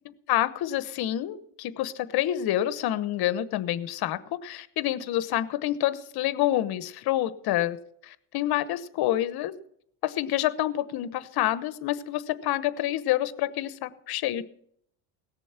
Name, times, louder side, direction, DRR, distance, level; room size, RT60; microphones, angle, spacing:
voice 1, 0.3-7.8 8.0-9.5 10.0-14.4, left 13 dB, 55° left, 14 dB, 1.0 m, -28 dB
18.0 x 7.0 x 5.8 m, 0.67 s
cardioid pair, 130°, 45 cm